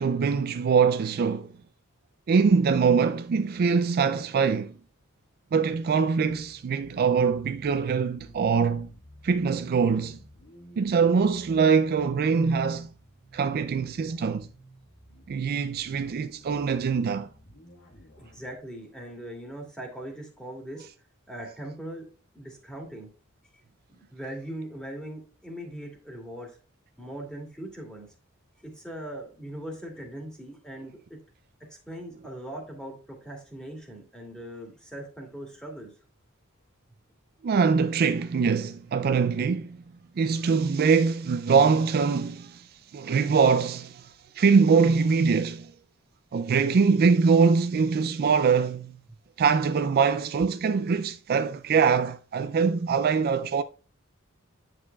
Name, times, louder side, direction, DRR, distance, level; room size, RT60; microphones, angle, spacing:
voice 1, 0.0-1.5 2.3-4.8 5.5-8.9 9.2-10.2 10.8-12.9 13.3-14.5 15.3-17.3 37.4-39.8 40.2-45.7 46.3-49.0 49.4-53.6, right 5 dB, 45° right, 0.3 m, -23 dB
sound 1, 6.3-18.6, equal, 60° left, 1.6 m, -53 dB
voice 2, 18.2-20.9 21.3-22.1 22.3-23.1 23.9-26.6 27.0-28.1 28.6-31.0 31.7-35.9, right 1 dB, 5° left, 2.4 m, -40 dB
9.8 x 6.6 x 2.3 m
head